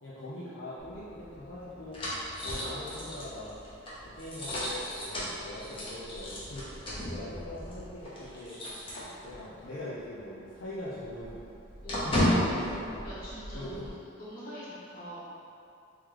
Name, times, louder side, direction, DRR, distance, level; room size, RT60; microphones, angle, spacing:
voice 1, 0.0-2.0 2.4-3.5 4.0-8.6 9.2-11.4 12.0-13.0 13.5-13.9, left 1 dB, 70° left, -10 dB, 0.6 m, -41 dB
sound 1, 0.8-9.6 9.9-10.1 10.4-13.9, left 1 dB, 30° left, 0.8 m, -35 dB
voice 2, 11.8-12.7 13.0-13.9 14.1-15.3, equal, 45° left, -10 dB, 1.3 m, -43 dB
3.2 x 3.1 x 3.7 m, 2.6 s
head